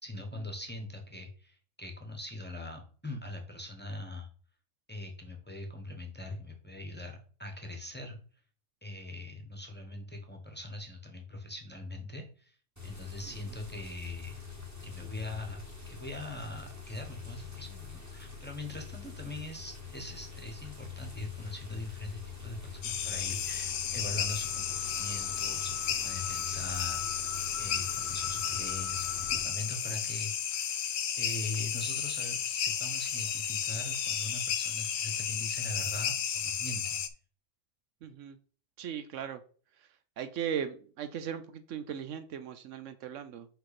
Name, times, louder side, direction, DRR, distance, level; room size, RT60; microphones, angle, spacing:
voice 1, 0.0-4.3 4.9-8.2 8.8-12.6 12.8-14.4 14.8-27.1 27.6-30.6 31.2-37.0, left 2 dB, 10° left, 2 dB, 1.1 m, -42 dB
sound 1, 12.8-29.4, left 6 dB, 15° right, 1.5 m, -45 dB
sound 2, 22.8-37.1, left 8 dB, 65° left, 0.9 m, -33 dB
voice 2, 38.0-38.4 38.8-39.4 39.8-39.9 40.2-43.5, right 8 dB, 75° right, 10 dB, 1.0 m, -38 dB
5.7 x 5.5 x 4.2 m, 0.42 s
omnidirectional pair, 1.3 m